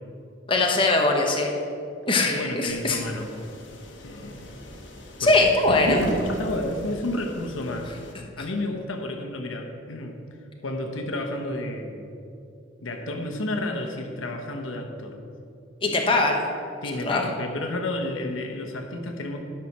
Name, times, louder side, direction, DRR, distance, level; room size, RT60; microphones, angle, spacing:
voice 1, 0.5-1.6 2.1-3.0 5.2-6.0 15.8-16.4 17.1-17.2, left 2 dB, 25° left, 1 dB, 1.0 m, -21 dB
voice 2, 2.3-3.3 4.0-4.6 5.2-5.4 6.3-7.9 8.4-10.2 10.6-12.0 12.8-15.2 15.8-16.0 16.8-19.5, left 1 dB, 90° left, 3 dB, 1.1 m, -31 dB
sound 1, 2.7-8.1, equal, 65° left, 1.4 m, -34 dB
11.5 x 5.9 x 6.1 m, 2.5 s
head